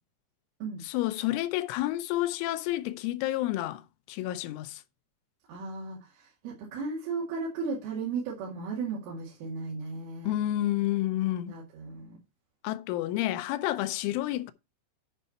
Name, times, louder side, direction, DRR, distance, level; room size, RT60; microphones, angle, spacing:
voice 1, 0.9-3.8 4.1-4.8 10.3-11.5 12.6-14.5, left 15 dB, 85° left, 3.2 m, -29 dB
voice 2, 5.5-10.3 11.5-12.2 13.3-13.4 14.1-14.2, right 4 dB, 90° right, 4.8 m, -35 dB
11.0 x 5.6 x 4.1 m
omnidirectional pair, 5.5 m